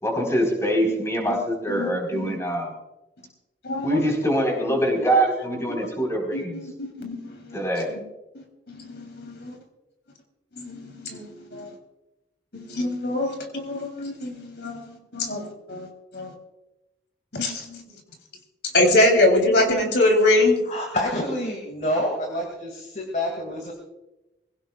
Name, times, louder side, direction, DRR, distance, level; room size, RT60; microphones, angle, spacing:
voice 1, 0.0-2.7 3.8-6.6 7.5-7.9, right 1 dB, 15° left, 0 dB, 4.2 m, -24 dB
voice 2, 1.7-2.3 3.6-4.0 6.3-7.6 7.9-8.0 8.7-9.6 10.6-11.7 12.5-15.9 16.1-16.3 17.3-17.8 18.7-20.6, left 2 dB, 80° left, 3 dB, 3.4 m, -24 dB
voice 3, 20.7-23.7, left 1 dB, 45° left, 1 dB, 2.4 m, -28 dB
22.5 x 17.0 x 2.4 m, 0.98 s
head